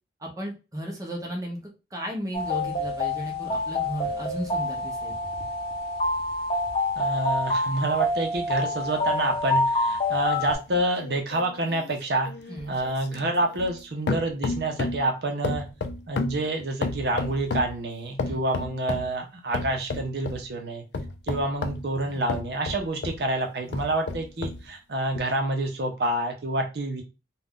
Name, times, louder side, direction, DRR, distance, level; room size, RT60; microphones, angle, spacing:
voice 1, 0.2-5.1 12.5-12.7 18.2-18.4, right 1 dB, 20° right, -1 dB, 0.7 m, -35 dB
sound 1, 2.3-10.5, left 1 dB, 30° left, 0.8 m, -27 dB
voice 2, 7.0-12.3 12.7-15.6 16.1-20.8 21.3-27.0, right 2 dB, 65° right, 3 dB, 0.7 m, -28 dB
sound 2, 10.5-13.8 14.1-15.1 15.4-17.8 18.2-19.1 19.5-20.4 20.9-23.2 23.7-24.6 25.2-25.3, left 3 dB, 70° left, 0.4 m, -32 dB
2.5 x 2.3 x 3.6 m, 0.29 s
head